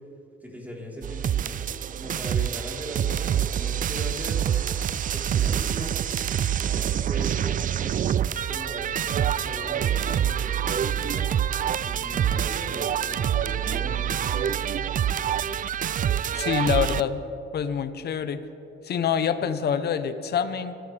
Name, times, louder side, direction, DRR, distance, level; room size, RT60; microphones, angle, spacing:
voice 1, 0.4-1.6 2.0-4.5 5.1-6.1 6.6-8.1 8.4-11.3 11.7-14.6, equal, 10° right, -3 dB, 3.9 m, -39 dB
sound 1, 1.0-17.0, right 9 dB, 45° right, 0.4 m, -26 dB
voice 2, 16.3-17.2 17.5-18.4 18.8-20.8, left 8 dB, 55° left, 10 dB, 0.9 m, -26 dB
25.5 x 12.5 x 3.4 m, 2.7 s
cardioid pair, 90°, 20 cm